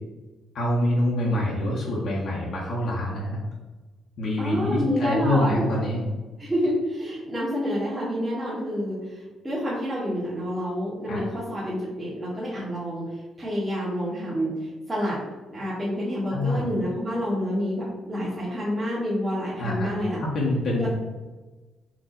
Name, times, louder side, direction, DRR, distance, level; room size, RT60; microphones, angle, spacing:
voice 1, 0.5-3.4 4.2-6.0 11.1-11.2 16.3-16.6 19.6-19.9 20.2-20.9, left 1 dB, 65° left, -5 dB, 1.2 m, -25 dB
voice 2, 4.4-5.7 6.4-13.1 13.4-15.2 15.5-20.2 20.8-20.9, equal, 15° right, -9 dB, 1.5 m, -28 dB
4.6 x 2.7 x 3.9 m, 1.2 s
cardioid pair, 90°, 0 cm